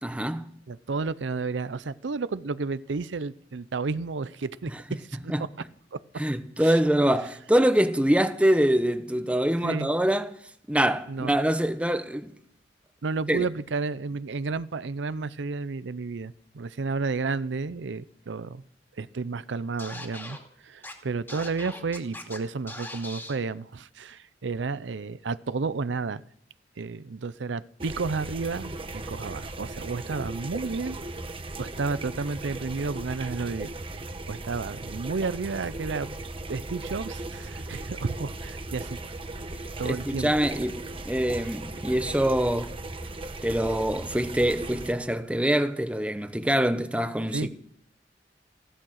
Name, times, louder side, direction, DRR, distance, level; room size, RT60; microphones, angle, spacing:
voice 1, 0.0-0.5 5.3-5.4 6.2-10.3 10.7-12.4 13.3-13.5 39.8-42.8 43.4-47.5, right 1 dB, 5° right, 0.9 m, -24 dB
voice 2, 0.7-5.3 5.9-6.0 6.6-6.8 9.6-9.9 11.1-11.3 13.0-18.6 19.0-20.4 20.6-26.2 26.8-31.0 31.6-33.7 34.0-36.2 36.5-39.0 39.8-40.3 47.3-47.5, right 4 dB, 85° right, 0.6 m, -32 dB
Scratching (performance technique), 19.8-20.4 20.8-20.9 21.3-22.4 22.7-23.4, left 1 dB, 15° left, 2.4 m, -40 dB
sound 1, 27.8-44.9, right 2 dB, 30° right, 1.1 m, -37 dB
16.0 x 12.5 x 6.4 m
head